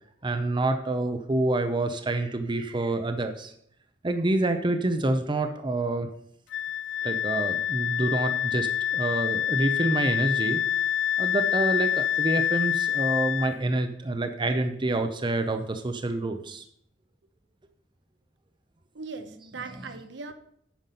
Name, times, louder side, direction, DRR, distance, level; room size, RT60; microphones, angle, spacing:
voice 1, 0.2-3.5 4.0-6.1 7.0-10.6 11.2-16.6, right 2 dB, 25° right, 7 dB, 0.6 m, -27 dB
Wind instrument woodwind instrument, 6.5-13.6, left 10 dB, 65° left, 0.4 m, -27 dB
voice 2, 18.9-20.3, right 4 dB, 70° right, 8 dB, 0.9 m, -39 dB
9.1 x 6.0 x 5.3 m, 0.69 s
head